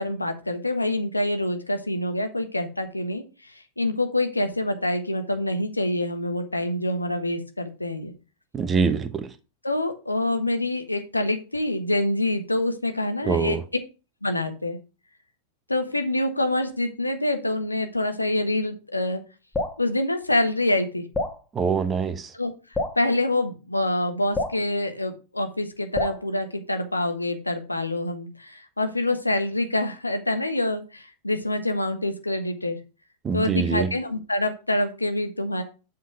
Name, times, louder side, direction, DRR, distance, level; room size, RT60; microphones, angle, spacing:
voice 1, 0.0-8.1 9.6-13.6 14.2-14.8 15.7-19.2 19.8-21.0 22.3-22.5 22.9-32.8 33.3-35.6, left 1 dB, 85° left, 1.1 m, -26 dB
voice 2, 8.5-9.3 13.2-13.6 21.5-22.3 33.2-33.9, right 5 dB, 20° right, 1.0 m, -24 dB
Drip, 19.5-19.8 21.1-21.4 22.7-23.0 24.3-24.6 25.9-26.2, left 3 dB, 10° left, 1.7 m, -27 dB
7.6 x 4.4 x 5.9 m
figure-of-eight pair, 90°, 0 cm